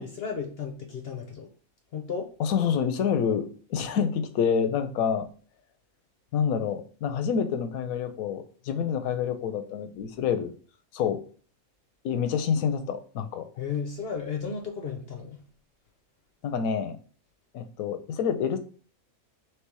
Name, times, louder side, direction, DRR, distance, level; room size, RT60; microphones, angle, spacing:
voice 1, 0.0-1.5 1.9-2.3 13.6-15.4, left 6 dB, 60° left, 0.7 m, -34 dB
voice 2, 2.4-5.3 6.3-10.5 10.9-11.2 12.0-13.5 16.4-17.0 17.5-18.6, left 7 dB, 80° left, 1.0 m, -27 dB
3.3 x 3.1 x 4.5 m
omnidirectional pair, 1.5 m